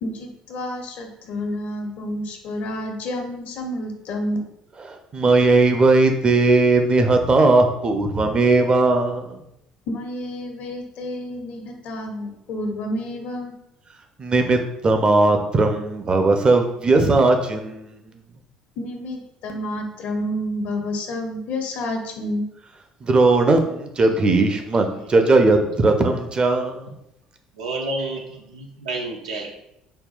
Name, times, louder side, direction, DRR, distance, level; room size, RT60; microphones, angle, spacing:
voice 1, 0.0-4.4 9.9-13.5 18.8-22.4, left 1 dB, 55° left, 3 dB, 0.6 m, -29 dB
voice 2, 5.1-9.4 14.2-18.0 23.0-26.9, right 3 dB, 30° right, 5 dB, 0.5 m, -18 dB
voice 3, 27.6-29.5, right 2 dB, 75° right, 0 dB, 0.5 m, -30 dB
5.3 x 2.2 x 2.3 m, 0.83 s
figure-of-eight pair, 55°, 3 cm